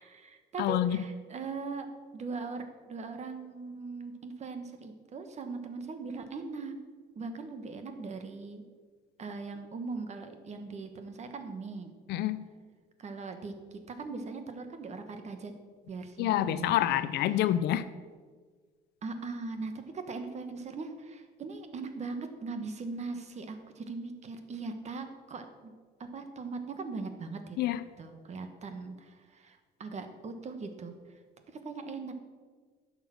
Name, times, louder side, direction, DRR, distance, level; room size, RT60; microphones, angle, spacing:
voice 1, 0.0-1.9 2.1-6.7 7.1-8.6 9.2-11.9 13.0-15.5 15.9-17.0 17.3-17.5 19.0-25.7 26.0-27.6 28.0-31.2 31.5-32.1, right 4 dB, 40° right, 7 dB, 1.5 m, -40 dB
voice 2, 0.6-1.0 12.1-12.4 16.2-17.9 27.6-27.8, left 12 dB, 80° left, 13 dB, 0.5 m, -27 dB
11.5 x 6.7 x 6.3 m, 1.5 s
cardioid pair, 110°, 17 cm